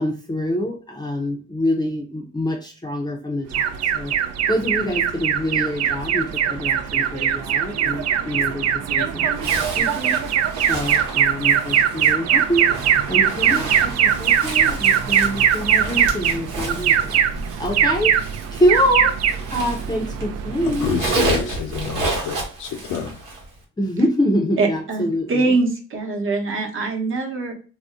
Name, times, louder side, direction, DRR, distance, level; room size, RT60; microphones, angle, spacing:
voice 1, 0.0-4.1 4.5-10.2 10.7-12.7 13.1-17.3 17.6-18.2 18.5-19.2 19.5-21.6 23.8-25.5, equal, 15° left, 1 dB, 0.5 m, -25 dB
Alarm, 3.5-21.1, right 9 dB, 60° right, 0.4 m, -21 dB
Zipper (clothing), 9.3-20.2 20.5-23.5, right 2 dB, 85° right, 1.1 m, -31 dB
voice 2, 20.8-23.1, left 7 dB, 90° left, 4 dB, 0.7 m, -28 dB
voice 3, 24.6-27.5, right 3 dB, 45° right, 2 dB, 0.9 m, -23 dB
2.6 x 2.1 x 3.6 m, 0.37 s
cardioid pair, 90°, 30 cm